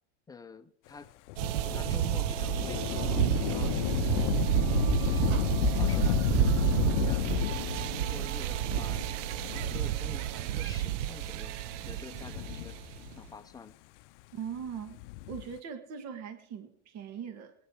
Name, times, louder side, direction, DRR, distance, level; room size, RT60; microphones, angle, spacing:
voice 1, 0.3-1.1 1.7-4.0 4.6-7.5 7.8-9.1 9.5-12.8 13.2-13.8, left 5 dB, 10° left, 8 dB, 0.7 m, -48 dB
Thunder / Rain, 1.3-10.2 11.0-11.1 12.0-13.3 14.8-15.6, left 18 dB, 70° left, 0.5 m, -32 dB
sound 1, 1.4-13.1, right 13 dB, 75° right, 0.7 m, -30 dB
Speech synthesizer, 1.8-4.8, right 1 dB, 30° right, 2.5 m, -47 dB
voice 2, 14.3-15.0 15.3-17.5, right 7 dB, 45° right, 8 dB, 1.7 m, -40 dB
21.0 x 10.0 x 4.8 m, 0.73 s
supercardioid pair, 135°, 37 cm